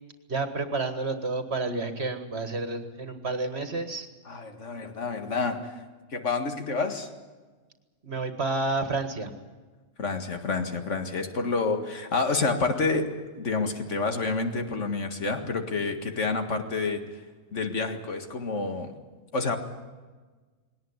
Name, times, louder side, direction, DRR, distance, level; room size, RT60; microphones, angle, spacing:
voice 1, 0.3-4.1 8.0-9.3, right 3 dB, 50° right, 8 dB, 1.9 m, -30 dB
voice 2, 4.3-5.7 6.1-7.1 10.0-13.1 13.4-17.0 17.5-19.0 19.3-19.6, left 3 dB, 60° left, 6 dB, 2.2 m, -28 dB
20.0 x 18.0 x 9.8 m, 1.3 s
omnidirectional pair, 1.4 m